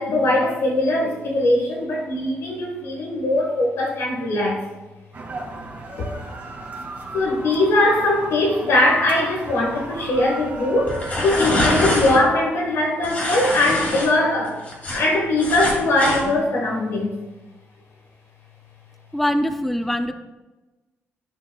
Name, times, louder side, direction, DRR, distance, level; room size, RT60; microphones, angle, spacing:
voice 1, 0.0-4.7 6.0-6.1 7.1-14.6 14.9-17.1, left 1 dB, 80° left, -1 dB, 1.3 m, -21 dB
sound 1, 5.1-12.1, right 2 dB, 40° right, 2.0 m, -35 dB
sound 2, 10.9-12.2 13.0-14.1 14.4-16.2, left 1 dB, 35° left, 2.3 m, -24 dB
voice 2, 19.1-20.1, equal, ahead, 8 dB, 0.4 m, -22 dB
13.0 x 5.6 x 2.3 m, 1.2 s
cardioid pair, 120°, 5 cm